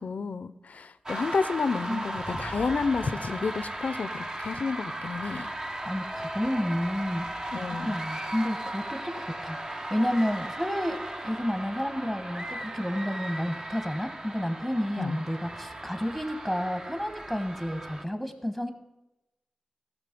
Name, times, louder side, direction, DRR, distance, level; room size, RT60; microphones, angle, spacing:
voice 1, 0.0-5.5 7.5-8.0 15.0-15.2, left 4 dB, 70° left, 13 dB, 0.5 m, -30 dB
sound 1, 1.1-18.0, right 1 dB, 25° right, 0.8 m, -37 dB
voice 2, 5.8-7.3 7.6-18.7, equal, 5° right, 8 dB, 1.3 m, -31 dB
15.0 x 6.2 x 5.3 m, 0.96 s
wide cardioid pair, 100°, 3 cm